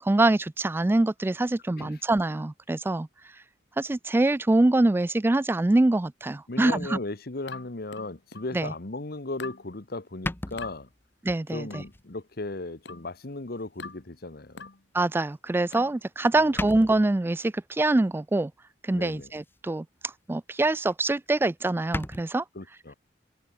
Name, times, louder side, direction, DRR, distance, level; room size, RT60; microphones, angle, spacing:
voice 1, 0.0-3.1 3.8-7.0 8.5-8.7 11.2-11.8 14.9-18.5 18.8-22.4, right 2 dB, 10° right, 0.3 m, -24 dB
voice 2, 6.5-10.9 11.5-14.7 18.9-19.3 22.5-22.9, left 2 dB, 60° left, 1.3 m, -36 dB
sound 1, 7.5-8.6 9.4-9.7 10.6-10.8 11.7-12.0 12.9-13.1 13.8-14.1 14.6-14.8 15.7-16.0, left 4 dB, 80° left, 2.2 m, -42 dB
sound 2, 10.2-11.2 11.8-12.1 12.5-12.6 13.9-14.0 15.7-16.0 16.3-16.4 16.6-17.2 19.1-19.6 20.0-20.2 20.6-20.7 20.9-21.0 21.3-21.4 21.7-22.2, left 1 dB, 10° left, 0.8 m, -35 dB
head